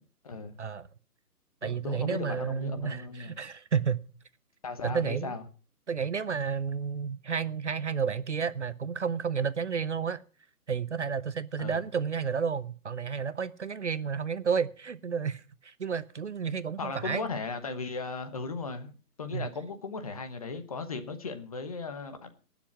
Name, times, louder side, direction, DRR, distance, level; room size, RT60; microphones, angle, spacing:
voice 1, 0.2-0.6 1.6-3.3 4.6-5.4 11.6-11.8 16.8-22.3, left 4 dB, 25° left, 1.0 m, -37 dB
voice 2, 1.6-4.0 4.8-5.4 5.9-10.2 10.7-17.3 19.3-19.5, right 6 dB, 50° right, 0.6 m, -31 dB
18.5 x 7.1 x 6.0 m
hypercardioid pair, 165°, 47 cm